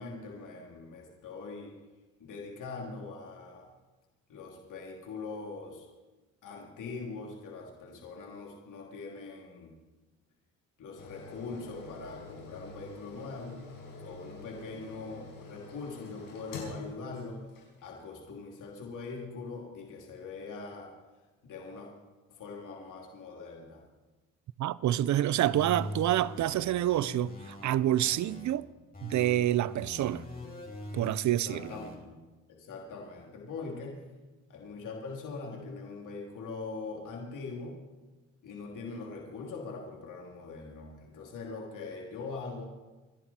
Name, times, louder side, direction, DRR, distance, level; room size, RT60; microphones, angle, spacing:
voice 1, 0.0-1.7 2.2-3.7 4.3-5.8 6.4-9.7 10.8-13.6 14.0-17.5 17.8-20.9 21.4-21.9 22.3-23.8 31.3-32.2 32.5-34.0 34.5-37.8 38.4-42.6, left 4 dB, 70° left, 3.0 m, -42 dB
sound 1, 11.0-18.0 18.5-18.6, left 3 dB, 90° left, 5.6 m, -46 dB
voice 2, 24.6-28.7 29.0-30.3 30.9-31.7, right 13 dB, 60° right, 0.6 m, -28 dB
sound 2, 25.5-28.5 28.9-31.9, left 1 dB, 25° left, 4.9 m, -43 dB
26.5 x 11.0 x 4.4 m
supercardioid pair, 75°, 32 cm